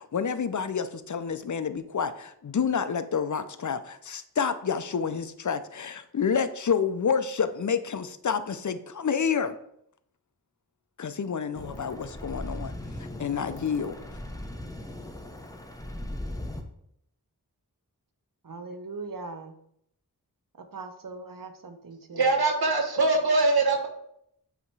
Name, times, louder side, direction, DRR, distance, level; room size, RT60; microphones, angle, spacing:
voice 1, 0.0-9.5 11.0-14.0, left 6 dB, 50° left, 11 dB, 0.5 m, -29 dB
sound 1, 11.5-16.6, left 1 dB, 10° left, 0.7 m, -38 dB
voice 2, 18.4-19.5 20.7-22.3, right 3 dB, 60° right, 7 dB, 0.8 m, -40 dB
voice 3, 22.1-23.9, right 3 dB, 75° right, 3 dB, 1.1 m, -23 dB
8.0 x 2.9 x 4.6 m, 0.73 s
wide cardioid pair, 55°, 38 cm